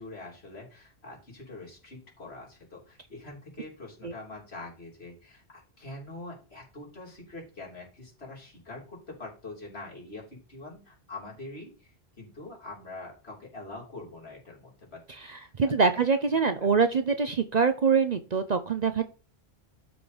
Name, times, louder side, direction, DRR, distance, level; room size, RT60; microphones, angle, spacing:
voice 1, 0.0-16.0 16.3-16.7, left 2 dB, 70° left, -3 dB, 3.7 m, -44 dB
voice 2, 15.6-19.0, right 5 dB, 45° right, 9 dB, 0.7 m, -24 dB
12.0 x 4.0 x 5.0 m, 0.35 s
omnidirectional pair, 1.1 m